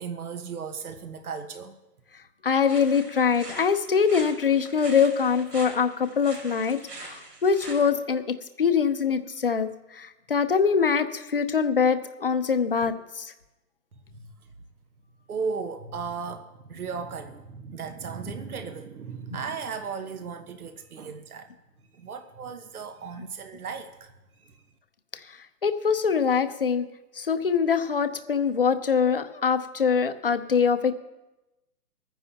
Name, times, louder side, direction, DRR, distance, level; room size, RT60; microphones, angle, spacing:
voice 1, 0.0-1.8 14.1-14.3 15.3-21.5 21.9-24.1 24.4-24.5, right 5 dB, 65° right, 7 dB, 1.3 m, -36 dB
voice 2, 2.4-8.2 8.6-13.3 25.6-26.8 27.2-30.9, left 6 dB, 35° left, 9 dB, 0.7 m, -23 dB
sound 1, 2.6-7.9, right 2 dB, 90° right, 5.1 m, -43 dB
24.5 x 9.8 x 2.9 m, 1.0 s
hypercardioid pair, 175°, 47 cm